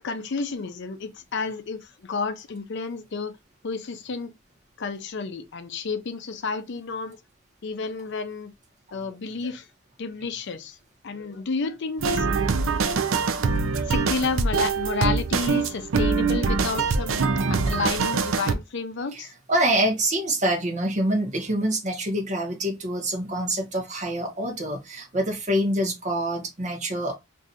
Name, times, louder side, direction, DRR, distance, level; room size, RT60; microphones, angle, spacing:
voice 1, 0.0-3.3 3.6-4.3 4.8-7.2 7.6-8.5 8.9-9.7 10.0-10.8 11.0-12.3 12.9-13.0 13.9-19.3, left 4 dB, 55° left, 0.5 m, -31 dB
sound 1, 12.0-18.5, right 4 dB, 60° right, 0.4 m, -24 dB
voice 2, 19.1-27.2, right 1 dB, 35° right, 1.0 m, -26 dB
2.7 x 2.4 x 4.0 m
head